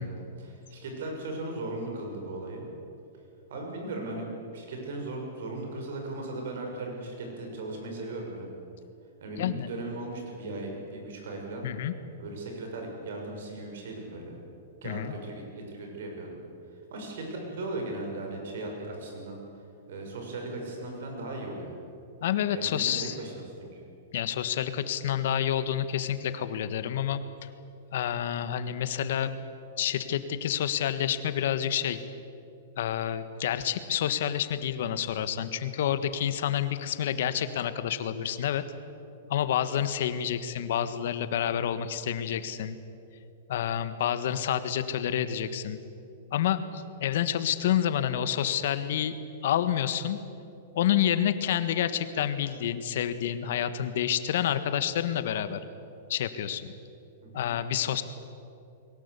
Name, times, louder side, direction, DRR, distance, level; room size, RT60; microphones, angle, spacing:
voice 1, 0.0-2.6 3.5-4.3 4.5-8.5 9.2-11.7 12.2-14.3 14.8-16.4 16.9-19.4 19.9-21.7 22.5-23.8 57.2-57.5, right 2 dB, 70° right, 1 dB, 6.9 m, -37 dB
voice 2, 9.4-9.7 11.6-11.9 14.8-15.1 22.2-23.2 24.1-27.2 27.9-29.3 29.8-32.0 32.8-38.6 39.3-42.8 43.5-45.8 46.3-49.2 49.4-50.2 50.7-55.6 56.1-56.7 57.3-58.0, left 10 dB, 65° left, 12 dB, 1.5 m, -28 dB
22.5 x 18.5 x 8.3 m, 2.7 s
hypercardioid pair, 150°, 0 cm